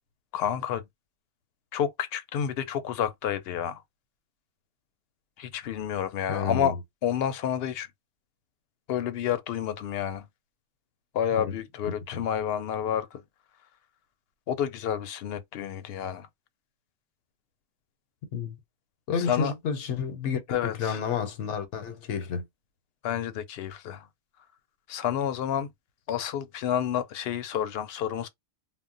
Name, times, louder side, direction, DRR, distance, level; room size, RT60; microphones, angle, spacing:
voice 1, 0.3-0.8 1.7-3.8 5.4-6.8 7.0-7.9 8.9-10.3 11.1-13.2 14.5-16.3 19.3-19.5 20.5-21.0 23.0-24.1 24.9-25.7 26.1-28.3, left 9 dB, 65° left, 0.7 m, -29 dB
voice 2, 6.3-6.7 11.3-11.6 12.1-12.2 18.3-18.6 19.1-22.4, left 6 dB, 90° left, 1.0 m, -30 dB
2.2 x 2.1 x 3.7 m
omnidirectional pair, 1.2 m